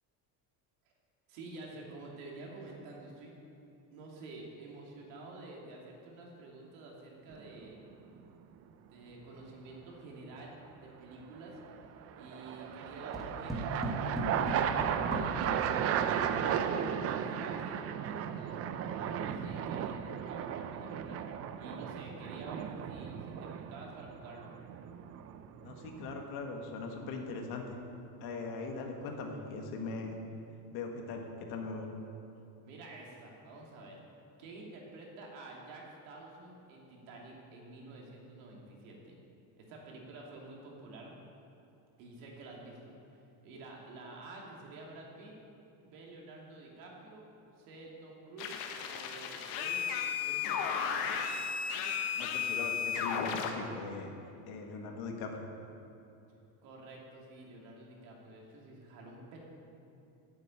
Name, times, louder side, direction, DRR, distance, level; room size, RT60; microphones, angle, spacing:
voice 1, 1.3-3.4 3.9-7.8 8.9-11.6 12.1-21.3 21.6-24.5 32.6-34.0 34.4-39.2 39.6-41.1 42.0-42.9 43.4-45.3 45.8-47.2 47.6-49.8 50.2-50.6 56.6-59.4, right 2 dB, 85° right, -2 dB, 2.8 m, -49 dB
sound 1, 7.3-7.8 11.6-26.2, right 8 dB, 35° right, 0.5 m, -35 dB
sound 2, 13.1-16.4, right 1 dB, ahead, 1.4 m, -38 dB
voice 2, 25.6-27.8 28.2-30.2 30.7-31.9 52.2-54.1 54.5-55.5, left 3 dB, 60° left, 2 dB, 1.7 m, -40 dB
sound 3, 48.4-53.5, left 7 dB, 85° left, 1.3 m, -34 dB
9.3 x 7.7 x 8.9 m, 2.7 s
cardioid pair, 155°, 43 cm